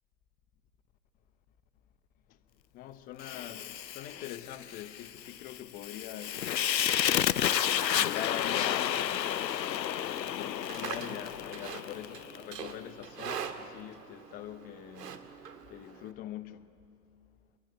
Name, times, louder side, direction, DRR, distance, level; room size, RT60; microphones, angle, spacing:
voice 1, 2.7-6.8 8.0-9.3 9.8-15.4 15.7-16.7, left 12 dB, 20° left, 0.8 m, -44 dB
Fire, 3.2-12.4, left 10 dB, 90° left, 0.7 m, -31 dB
Livestock farm animals working animals, 10.4-16.1, right 7 dB, 70° right, 2.2 m, -43 dB
26.0 x 23.0 x 9.1 m
hypercardioid pair, 125°, 49 cm